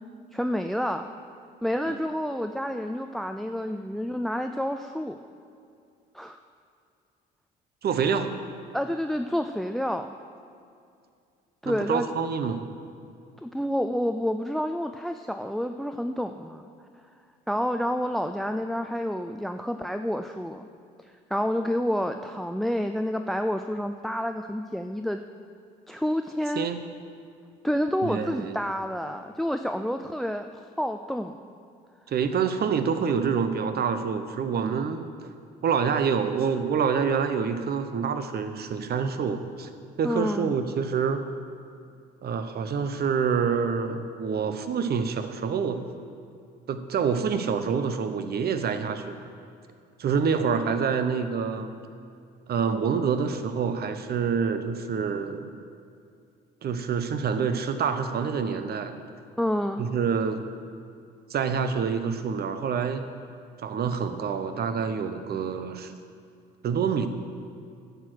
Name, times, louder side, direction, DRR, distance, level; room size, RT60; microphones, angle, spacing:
voice 1, 0.3-1.1 1.6-5.2 6.1-6.4 8.7-10.1 11.6-12.1 13.4-16.6 17.5-20.7 21.0-25.2 25.9-26.7 27.6-31.4 40.0-40.5 59.4-59.9, equal, ahead, 7 dB, 0.4 m, -29 dB
voice 2, 7.8-8.3 11.6-12.6 26.5-26.8 28.0-28.6 32.1-35.3 35.6-39.7 40.0-41.2 42.2-45.8 46.7-49.2 50.0-51.7 52.5-55.5 56.6-58.9 59.8-60.4 61.3-63.1 63.6-65.9 66.6-67.1, right 6 dB, 50° right, 9 dB, 0.9 m, -27 dB
11.0 x 6.7 x 6.4 m, 2.4 s
supercardioid pair, 70°, 21 cm